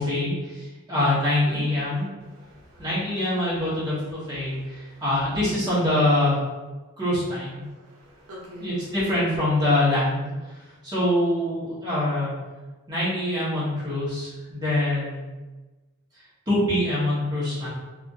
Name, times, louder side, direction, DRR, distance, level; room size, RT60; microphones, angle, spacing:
voice 1, 0.0-2.1 2.8-6.4 7.0-7.6 8.6-10.3 10.8-12.3 12.9-15.2 16.5-17.7, left 1 dB, 20° right, -10 dB, 1.3 m, -24 dB
voice 2, 1.4-3.0 4.4-5.0 7.6-8.9, equal, 80° right, -3 dB, 0.7 m, -45 dB
3.5 x 2.5 x 2.6 m, 1.2 s
head